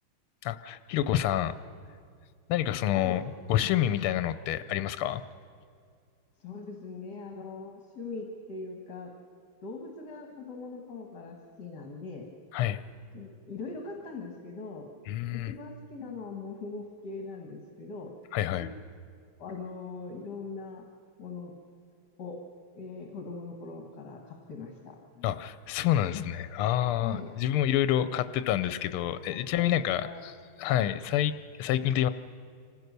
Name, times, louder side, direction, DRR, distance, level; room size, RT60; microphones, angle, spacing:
voice 1, 0.4-1.5 2.5-3.2 3.5-5.2 12.5-12.8 15.1-15.5 18.3-18.7 25.2-32.1, left 12 dB, 85° left, 13 dB, 1.5 m, -28 dB
voice 2, 6.4-9.1 9.6-12.3 13.1-14.9 15.3-18.1 19.4-20.8 21.2-21.5 22.2-22.4 22.8-25.3 27.0-27.3 29.3-29.7 30.0-30.2, left 4 dB, 55° left, 1 dB, 2.1 m, -41 dB
26.0 x 15.5 x 6.7 m, 2.2 s
omnidirectional pair, 2.3 m